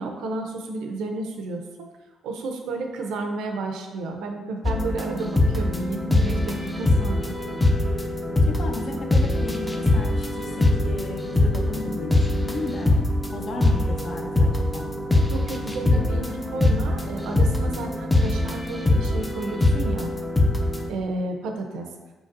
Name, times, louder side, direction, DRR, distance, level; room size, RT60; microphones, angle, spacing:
voice 1, 0.0-1.6 2.2-7.4 15.3-20.1 20.9-21.9, right 2 dB, 90° right, 3 dB, 0.5 m, -31 dB
sound 1, 4.6-20.9, left 2 dB, 10° left, 0.5 m, -23 dB
sound 2, 5.7-18.5, equal, 85° left, 1.4 m, -40 dB
voice 2, 8.3-12.9 13.3-14.9, left 2 dB, 55° left, 2 dB, 0.7 m, -34 dB
4.9 x 3.8 x 2.5 m, 1.2 s
cardioid pair, 90°, 0 cm